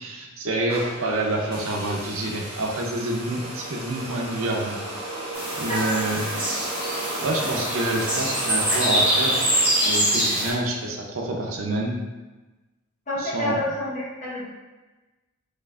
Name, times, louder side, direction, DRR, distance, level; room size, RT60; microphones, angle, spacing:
voice 1, 0.0-4.8 5.5-6.2 7.2-9.4 9.9-11.9 13.2-13.6, right 2 dB, 75° right, 0 dB, 0.6 m, -27 dB
sound 1, 0.7-10.9, right 2 dB, 30° right, 1.0 m, -34 dB
sound 2, 5.3-10.5, equal, 10° right, 1.2 m, -24 dB
voice 2, 13.1-14.4, left 2 dB, 40° left, -7 dB, 1.0 m, -28 dB
4.7 x 2.5 x 2.4 m, 1.2 s
head